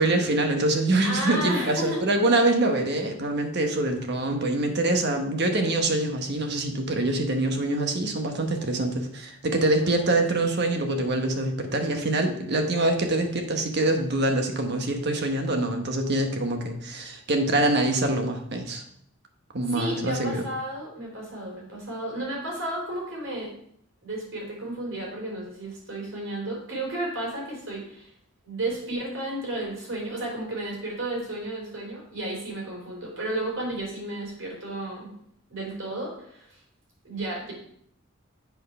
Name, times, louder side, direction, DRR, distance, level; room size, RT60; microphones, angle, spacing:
voice 1, 0.0-18.8 19.5-20.4, right 2 dB, 55° right, 4 dB, 1.1 m, -25 dB
voice 2, 1.0-2.0 19.7-23.5 24.0-28.1 28.4-35.1 35.5-36.6 37.0-37.5, right 1 dB, 75° right, -2 dB, 3.4 m, -32 dB
7.9 x 4.6 x 5.4 m, 0.69 s
head